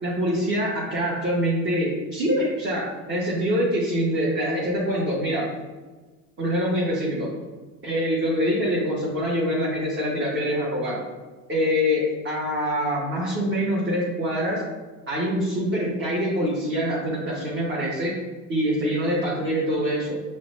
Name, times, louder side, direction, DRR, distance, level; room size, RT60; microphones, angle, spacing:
voice 1, 0.0-5.5 6.4-7.3 7.8-11.0 11.5-14.6 15.1-18.2 18.5-20.2, equal, 35° right, -6 dB, 1.1 m, -25 dB
5.5 x 2.2 x 3.2 m, 1.3 s
supercardioid pair, 75°, 34 cm